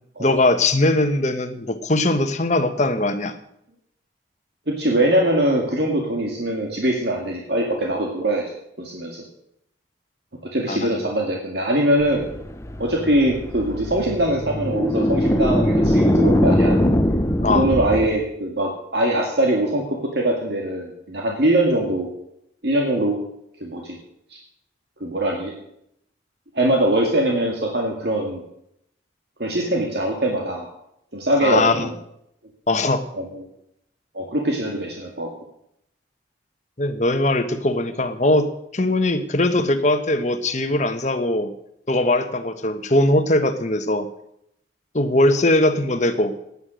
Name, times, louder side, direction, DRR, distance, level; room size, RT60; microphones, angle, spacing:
voice 1, 0.2-3.4 10.7-11.0 17.4-17.7 31.4-31.9 32.7-33.0 36.8-41.5 41.9-44.1 44.9-46.5, left 2 dB, 40° left, 9 dB, 1.2 m, -20 dB
voice 2, 4.7-8.4 8.8-9.2 10.5-12.2 12.8-16.8 17.5-22.1 22.6-23.2 23.6-24.0 24.3-24.4 25.0-25.5 26.5-28.4 29.4-30.7 31.1-31.9 33.1-33.4 34.1-35.3, right 1 dB, 60° right, 0 dB, 2.1 m, -22 dB
sound 1, 12.0-18.1, equal, 15° left, 0.8 m, -21 dB
17.0 x 9.7 x 6.3 m, 0.77 s
head